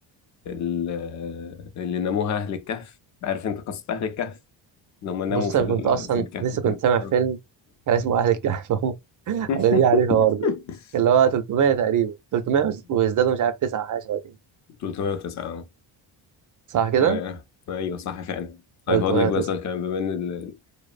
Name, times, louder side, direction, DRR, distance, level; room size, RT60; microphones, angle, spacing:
voice 1, 0.5-2.9 3.2-4.4 5.0-7.1 9.5-10.8 14.8-15.7 17.0-17.4 17.7-18.6 18.9-20.6, left 7 dB, 40° left, 0.5 m, -28 dB
voice 2, 5.3-7.4 7.9-8.9 9.3-10.4 10.9-14.2 16.7-17.2 18.9-19.3, right 8 dB, 45° right, 0.5 m, -21 dB
2.7 x 2.0 x 2.4 m
cardioid pair, 120°, 47 cm